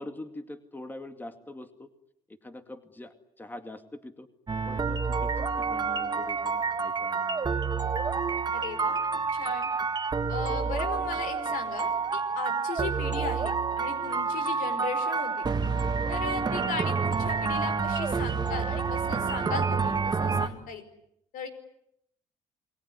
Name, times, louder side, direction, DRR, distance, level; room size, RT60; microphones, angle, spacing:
voice 1, 0.0-1.9 2.3-4.3 4.7-7.6, left 2 dB, 15° left, 8 dB, 2.2 m, -44 dB
sound 1, 4.5-20.5, right 5 dB, 30° right, 1.8 m, -28 dB
voice 2, 8.5-9.0 9.3-9.7 10.3-15.5 16.1-20.8 21.3-21.5, left 5 dB, 80° left, 9 dB, 5.0 m, -37 dB
29.0 x 20.0 x 9.6 m, 0.76 s
cardioid pair, 90°, 14 cm